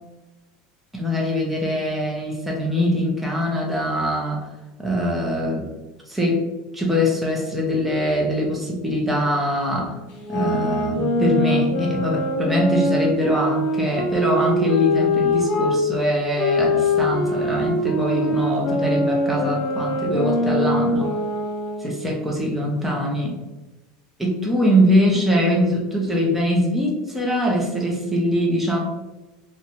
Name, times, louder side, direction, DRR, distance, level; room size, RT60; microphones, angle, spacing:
voice 1, 0.9-4.5 4.8-5.7 6.1-6.4 6.7-9.9 10.3-21.1 21.8-23.4 24.2-28.8, equal, 5° right, -2 dB, 0.6 m, -22 dB
sound 1, 10.1-15.8 16.3-21.9, left 1 dB, 60° left, 0.9 m, -23 dB
2.6 x 2.1 x 2.9 m, 1.1 s
supercardioid pair, 135°, 3 cm